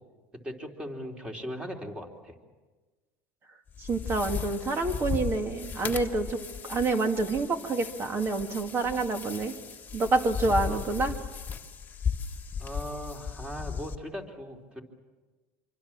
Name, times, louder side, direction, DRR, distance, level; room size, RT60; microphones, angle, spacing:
voice 1, 0.3-2.4 10.5-10.8 12.6-14.8, equal, 15° right, 2 dB, 3.6 m, -39 dB
sound 1, 3.7-14.0, left 6 dB, 25° left, 1.6 m, -36 dB
voice 2, 3.8-6.4 6.6-9.5 9.9-11.2, right 3 dB, 30° right, 6 dB, 2.1 m, -27 dB
26.5 x 24.0 x 7.4 m, 1.3 s
supercardioid pair, 125°, 8 cm